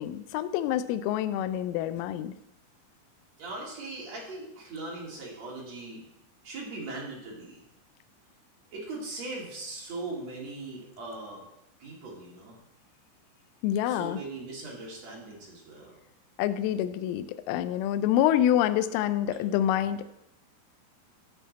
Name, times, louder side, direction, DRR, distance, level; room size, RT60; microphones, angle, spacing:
voice 1, 0.0-2.3 13.6-14.2 16.4-20.1, left 11 dB, 85° left, 11 dB, 3.0 m, -27 dB
voice 2, 3.4-6.1 6.4-7.6 8.7-11.4 11.8-12.6 13.8-16.0, right 2 dB, 40° right, -3 dB, 2.9 m, -39 dB
12.5 x 7.5 x 4.1 m, 0.81 s
omnidirectional pair, 5.8 m